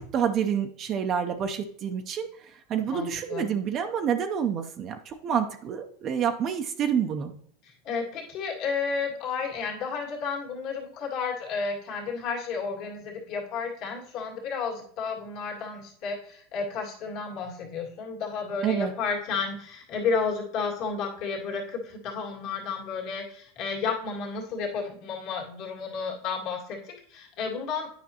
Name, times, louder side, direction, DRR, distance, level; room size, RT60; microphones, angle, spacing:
voice 1, 0.0-2.3 2.7-7.3 18.6-18.9, right 8 dB, 40° right, 6 dB, 0.6 m, -28 dB
voice 2, 2.9-3.5 7.6-27.9, left 5 dB, 55° left, -1 dB, 2.0 m, -32 dB
9.5 x 5.1 x 2.9 m, 0.62 s
hypercardioid pair, 115°, 0 cm